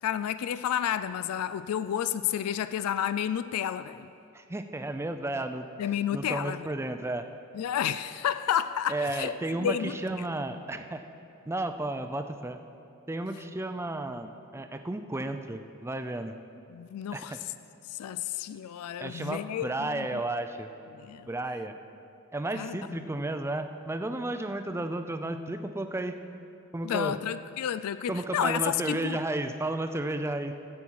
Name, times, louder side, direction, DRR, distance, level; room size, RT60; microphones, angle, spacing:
voice 1, 0.0-4.1 5.8-6.7 7.5-9.3 9.6-10.0 16.7-17.4 17.9-20.2 20.9-21.3 22.5-23.1 26.8-29.2, left 9 dB, 85° left, 0.3 m, -31 dB
voice 2, 4.3-5.7 6.1-7.2 8.9-11.0 11.5-12.6 13.1-16.4 17.1-17.4 19.0-20.7 21.3-21.8 22.3-26.2 26.7-27.2 28.1-30.5, right 2 dB, 10° right, 0.4 m, -33 dB
13.5 x 8.5 x 4.6 m
head